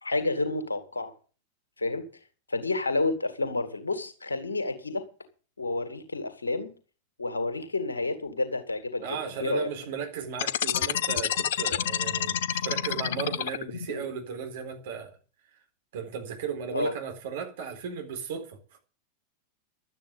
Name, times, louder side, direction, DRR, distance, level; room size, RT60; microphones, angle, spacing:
voice 1, 0.0-1.1 1.8-2.1 2.5-5.0 5.6-6.7 7.2-9.7 13.9-14.0 16.7-16.9, left 2 dB, 75° left, 2.3 m, -30 dB
voice 2, 9.0-15.2 15.9-18.8, right 7 dB, 55° right, 4.2 m, -36 dB
sound 1, 10.3-13.9, left 9 dB, 60° left, 0.9 m, -28 dB
12.0 x 9.1 x 8.3 m
figure-of-eight pair, 90°, 0 cm